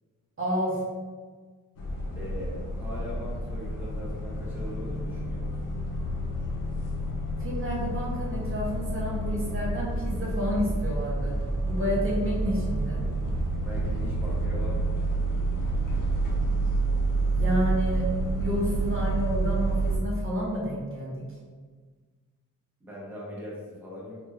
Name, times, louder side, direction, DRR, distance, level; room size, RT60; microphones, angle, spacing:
voice 1, 0.4-0.8 7.4-11.3 11.6-13.0 17.3-18.1 18.4-21.2, equal, 40° right, -6 dB, 0.9 m, -30 dB
sound 1, 1.8-20.0, right 2 dB, 70° left, 0.6 m, -29 dB
voice 2, 2.1-5.5 13.6-15.4 22.8-24.2, left 1 dB, 5° right, -6 dB, 0.9 m, -40 dB
3.2 x 2.9 x 2.3 m, 1.4 s
cardioid pair, 90°, 34 cm